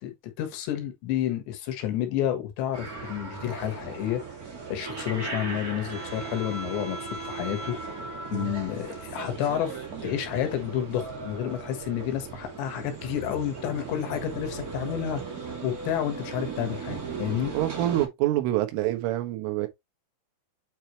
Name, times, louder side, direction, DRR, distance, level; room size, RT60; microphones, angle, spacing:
voice 1, 0.0-4.2 4.7-7.8 8.3-15.2 15.6-17.5, left 11 dB, 70° left, 3.4 m, -30 dB
sound 1, 2.7-18.1, right 4 dB, 70° right, 0.8 m, -37 dB
voice 2, 17.5-19.7, right 14 dB, 90° right, 3.7 m, -26 dB
8.8 x 4.4 x 3.1 m
omnidirectional pair, 5.6 m